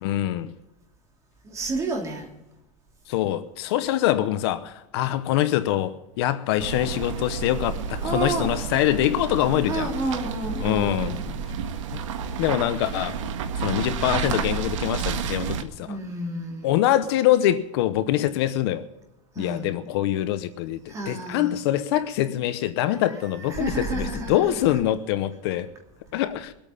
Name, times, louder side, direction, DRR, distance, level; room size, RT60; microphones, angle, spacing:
voice 1, 0.0-0.5 3.1-9.9 10.6-11.1 12.4-13.2 13.6-16.0 16.6-18.8 19.4-25.7 26.1-26.5, left 13 dB, 55° left, 0.9 m, -24 dB
voice 2, 1.4-2.3 8.0-8.6 9.6-11.3 15.8-16.8 19.3-19.9 20.9-21.5 22.8-24.7, right 2 dB, 20° right, 2.9 m, -31 dB
sound 1, 6.6-15.6, right 6 dB, 75° right, 1.7 m, -30 dB
22.5 x 8.8 x 5.7 m
supercardioid pair, 165°, 16 cm